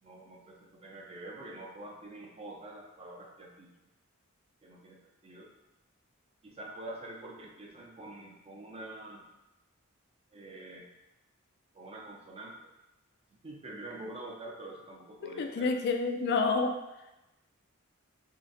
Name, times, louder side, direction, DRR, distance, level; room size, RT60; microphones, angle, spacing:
voice 1, 0.0-3.9 4.6-5.5 6.4-9.2 10.3-10.9 11.7-12.5 13.4-15.7, right 2 dB, 30° right, -1 dB, 0.5 m, -46 dB
voice 2, 15.4-16.8, left 4 dB, 55° left, 5 dB, 0.3 m, -28 dB
3.8 x 2.1 x 2.5 m, 0.99 s
head